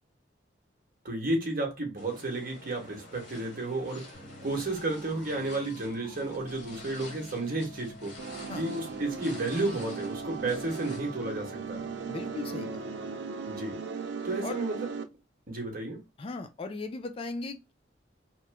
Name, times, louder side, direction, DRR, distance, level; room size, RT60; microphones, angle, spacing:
voice 1, 1.0-4.2 4.4-8.1 8.5-11.8 13.5-13.8 14.2-14.9 15.5-16.0, right 2 dB, 50° right, 1.0 m, -32 dB
sound 1, 2.0-11.0, left 1 dB, 65° left, 1.1 m, -49 dB
sound 2, 4.1-13.4, left 1 dB, 15° left, 1.3 m, -49 dB
sound 3, 8.2-15.0, right 5 dB, 70° right, 0.4 m, -37 dB
voice 2, 12.1-12.8 14.4-14.6 16.2-17.7, left 3 dB, 30° left, 0.3 m, -37 dB
2.9 x 2.1 x 3.4 m
head